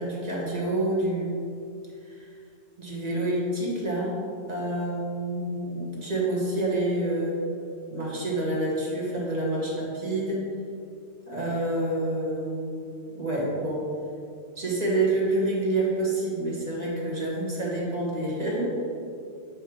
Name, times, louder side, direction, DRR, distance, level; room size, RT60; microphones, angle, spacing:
voice 1, 0.0-1.4 2.1-2.3 2.8-4.2 4.5-7.4 7.9-10.5 11.3-12.7 13.1-13.9 14.6-18.8, right 1 dB, 35° right, -4 dB, 1.4 m, -28 dB
7.7 x 3.1 x 4.7 m, 2.4 s
omnidirectional pair, 1.3 m